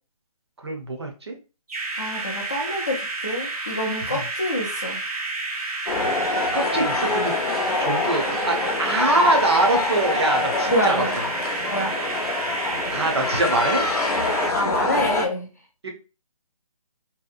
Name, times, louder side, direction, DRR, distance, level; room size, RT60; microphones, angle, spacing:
voice 1, 0.6-1.4 4.0-4.2 6.5-7.3 7.8-11.2 12.9-13.8 15.8-15.9, right 2 dB, 45° right, 3 dB, 0.6 m, -24 dB
sound 1, 1.7-14.5, right 3 dB, 80° right, 0.7 m, -30 dB
voice 2, 2.0-5.0 10.7-11.2 11.7-12.0 14.5-15.5, equal, 30° left, -1 dB, 0.4 m, -26 dB
sound 2, 5.9-15.3, left 3 dB, 90° left, 0.7 m, -25 dB
2.7 x 2.0 x 2.4 m, 0.32 s
hypercardioid pair, 175°, 19 cm